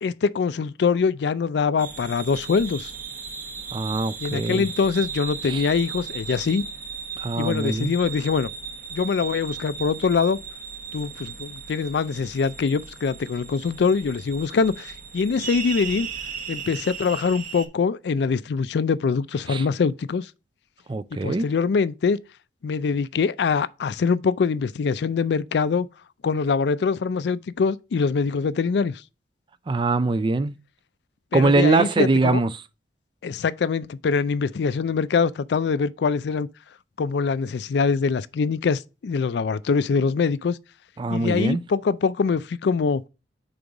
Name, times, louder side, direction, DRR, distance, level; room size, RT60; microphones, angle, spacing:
voice 1, 0.0-2.9 4.2-6.6 7.4-8.5 8.9-10.4 10.9-16.1 16.5-20.3 21.1-22.2 22.6-25.9 26.2-29.0 31.3-32.4 33.2-36.5 37.0-40.6 41.1-43.0, left 5 dB, 65° left, 0.4 m, -23 dB
sound 1, 1.8-17.7, right 6 dB, 45° right, 0.8 m, -36 dB
voice 2, 3.7-4.6 5.5-5.6 7.2-7.9 19.5-19.6 20.9-21.5 29.7-30.5 31.3-32.5 41.0-41.6, right 3 dB, 25° right, 0.3 m, -22 dB
5.2 x 4.0 x 4.7 m
head